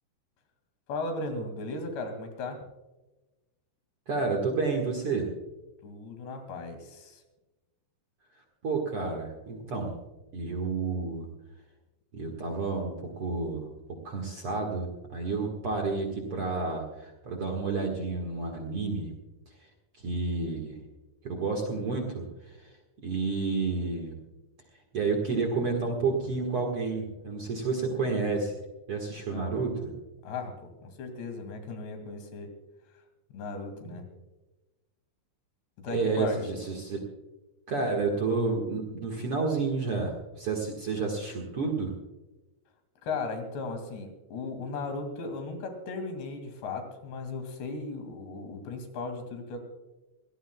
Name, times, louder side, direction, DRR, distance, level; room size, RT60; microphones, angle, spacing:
voice 1, 0.9-2.6 5.8-7.2 29.3-29.5 30.2-32.5 33.3-34.1 35.8-36.4 43.0-49.6, left 3 dB, 85° left, 6 dB, 4.5 m, -36 dB
voice 2, 4.1-5.3 8.6-9.9 10.3-11.3 12.1-13.7 14.0-19.1 20.0-20.8 21.2-22.7 23.0-24.2 24.9-28.5 28.9-29.9 35.9-37.0 37.7-41.9, right 4 dB, 50° right, 0 dB, 1.7 m, -30 dB
23.5 x 18.0 x 2.3 m, 1.1 s
omnidirectional pair, 4.8 m